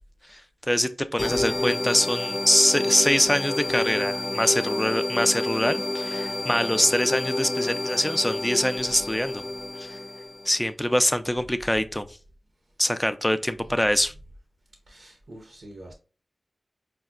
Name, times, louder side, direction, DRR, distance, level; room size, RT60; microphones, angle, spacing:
voice 1, 0.7-9.4 9.8-10.0 10.5-12.1 12.8-14.1, left 1 dB, 10° left, 0.3 m, -24 dB
sound 1, 1.2-10.5, left 2 dB, 60° left, 0.5 m, -29 dB
voice 2, 14.9-16.0, right 1 dB, 85° right, 0.7 m, -45 dB
4.6 x 2.1 x 2.4 m
cardioid pair, 45°, 0 cm